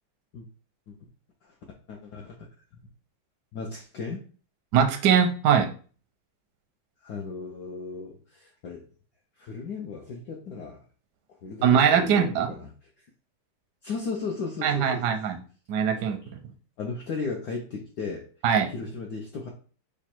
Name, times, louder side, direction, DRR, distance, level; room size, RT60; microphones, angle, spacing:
voice 1, 1.9-2.5 3.5-4.3 7.0-8.8 9.4-10.8 11.4-12.7 13.8-15.1 16.2-16.3 16.8-18.3 18.7-19.5, left 4 dB, 65° left, 0 dB, 1.0 m, -35 dB
voice 2, 4.7-5.7 11.6-12.5 14.6-15.4 15.7-16.2 18.4-18.7, right 7 dB, 70° right, 6 dB, 1.0 m, -21 dB
5.1 x 2.2 x 4.4 m, 0.40 s
omnidirectional pair, 2.3 m